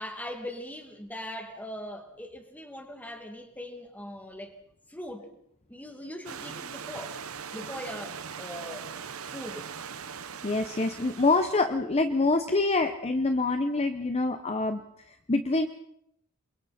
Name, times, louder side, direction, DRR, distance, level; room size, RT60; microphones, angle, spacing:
voice 1, 0.0-4.5 4.9-5.3 5.7-7.2 7.5-8.9 9.3-9.7, left 1 dB, 5° left, 4 dB, 2.4 m, -40 dB
Stream / Liquid, 6.2-11.6, right 7 dB, 70° right, 1.0 m, -40 dB
voice 2, 10.4-15.7, left 3 dB, 30° left, 8 dB, 0.9 m, -26 dB
29.0 x 22.5 x 4.3 m, 0.74 s
head